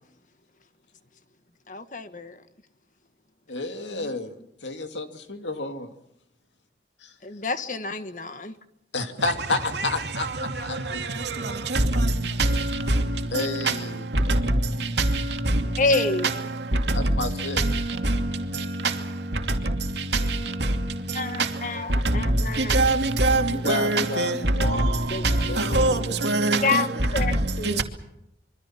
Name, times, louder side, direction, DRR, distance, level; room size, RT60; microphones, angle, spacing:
voice 1, 1.7-2.4 3.9-4.1 7.2-8.6 15.8-16.3 21.1-22.8 24.5-25.5 26.6-27.8, left 3 dB, 45° left, 1.5 m, -28 dB
voice 2, 3.5-4.3 4.6-5.9 7.0-7.1 8.9-11.0 13.3-14.3 16.9-17.6 23.5-24.6 25.5-26.1, left 3 dB, 85° left, 2.5 m, -31 dB
voice 3, 22.7-23.4 23.7-24.3 25.7-26.0 26.2-26.6, right 2 dB, 70° right, 2.6 m, -21 dB
26.5 x 24.0 x 5.9 m
head